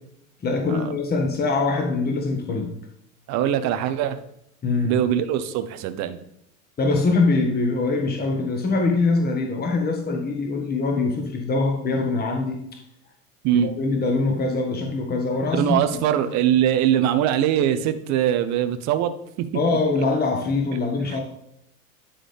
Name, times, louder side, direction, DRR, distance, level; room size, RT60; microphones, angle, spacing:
voice 1, 0.4-2.7 4.6-5.0 6.8-12.6 13.5-15.6 15.9-16.0 19.5-21.2, left 3 dB, 20° left, 2 dB, 1.3 m, -23 dB
voice 2, 3.3-4.2 4.8-6.2 13.4-13.7 15.6-19.5 21.1-21.2, right 10 dB, 40° right, 10 dB, 0.7 m, -22 dB
10.0 x 3.7 x 3.4 m, 0.76 s
hypercardioid pair, 90°, 42 cm